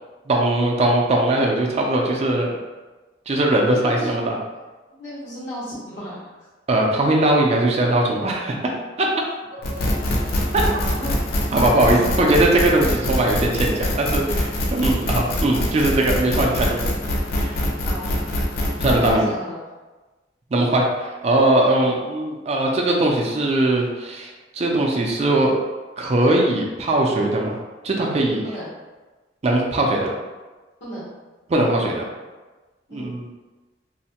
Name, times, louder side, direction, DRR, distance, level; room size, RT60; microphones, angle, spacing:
voice 1, 0.3-2.5 3.3-4.4 6.7-8.5 9.0-9.1 10.5-10.6 11.5-16.9 17.4-17.6 18.8-19.2 20.5-25.5 26.0-27.6 27.8-28.4 29.4-30.1 31.5-32.0 32.9-33.3, right 1 dB, 35° right, -1 dB, 0.4 m, -20 dB
voice 2, 3.7-4.1 4.9-6.3 9.7-9.8 10.2-11.1 17.8-18.1 19.0-19.6 21.7-21.9 28.4-28.7 30.8-31.1 32.9-33.1, equal, 75° left, -10 dB, 1.1 m, -35 dB
sound 1, 9.6-19.1, left 1 dB, 55° left, 0.5 m, -24 dB
3.1 x 2.1 x 2.8 m, 1.2 s
head